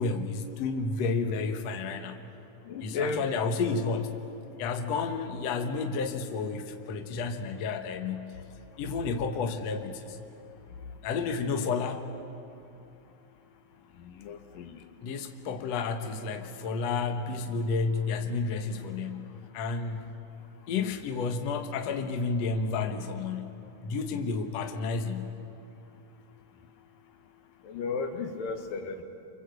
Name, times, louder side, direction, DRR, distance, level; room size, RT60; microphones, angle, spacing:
voice 1, 0.0-2.2 2.8-4.2 4.6-8.3 8.8-10.2 11.0-12.1 15.0-19.3 19.5-20.1 20.7-23.6 23.8-25.3, left 4 dB, 60° left, 5 dB, 2.1 m, -31 dB
voice 2, 2.7-3.2 14.2-14.7 27.7-29.0, left 4 dB, 75° left, 6 dB, 3.2 m, -34 dB
28.5 x 25.0 x 8.0 m, 2.7 s
omnidirectional pair, 4.0 m